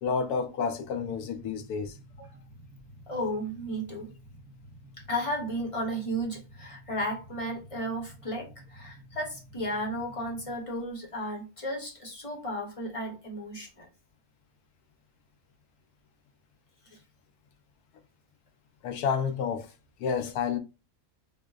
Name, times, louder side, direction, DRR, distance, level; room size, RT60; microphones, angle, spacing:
voice 1, 0.0-2.0 18.8-19.7 20.0-20.6, left 6 dB, 80° left, 1.1 m, -30 dB
sound 1, 0.8-10.6, equal, 75° right, 1.1 m, -51 dB
voice 2, 3.1-4.1 5.1-13.9 16.9-17.0, equal, 30° left, 0.7 m, -34 dB
5.1 x 2.1 x 2.3 m
omnidirectional pair, 1.6 m